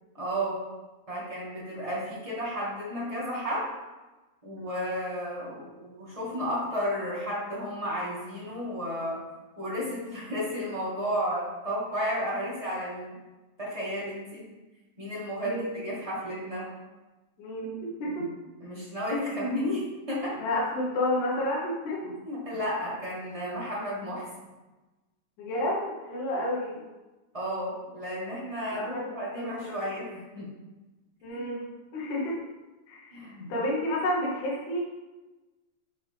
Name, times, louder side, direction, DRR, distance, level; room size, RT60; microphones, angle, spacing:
voice 1, 0.1-0.6 1.1-3.7 4.4-9.2 9.6-13.1 13.6-14.5 15.0-16.7 18.6-20.4 22.2-24.2 27.3-30.5 31.3-31.4 33.1-33.4, equal, 20° right, -8 dB, 0.8 m, -32 dB
voice 2, 15.4-15.7 17.4-18.4 20.4-22.2 25.4-26.9 28.7-29.0 29.4-29.8 31.2-31.6 31.9-32.4 32.9-34.8, left 1 dB, 65° left, -4 dB, 2.7 m, -30 dB
6.4 x 5.7 x 3.5 m, 1.1 s
omnidirectional pair, 4.0 m